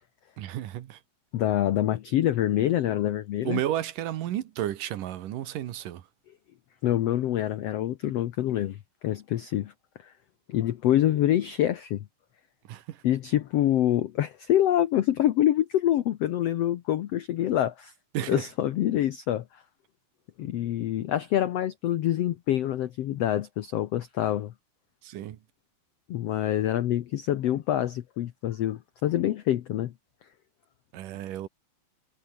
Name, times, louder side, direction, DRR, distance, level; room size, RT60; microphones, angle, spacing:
voice 1, 0.4-1.0 3.4-6.1 12.7-13.0 18.1-18.4 25.0-25.4 30.9-31.5, right 12 dB, 70° right, 2.8 m, -32 dB
voice 2, 1.3-3.6 6.8-9.7 10.0-10.1 10.5-12.0 13.0-17.9 18.3-19.6 20.4-24.5 26.1-29.9, left 12 dB, 80° left, 1.4 m, -26 dB
omnidirectional pair, 4.2 m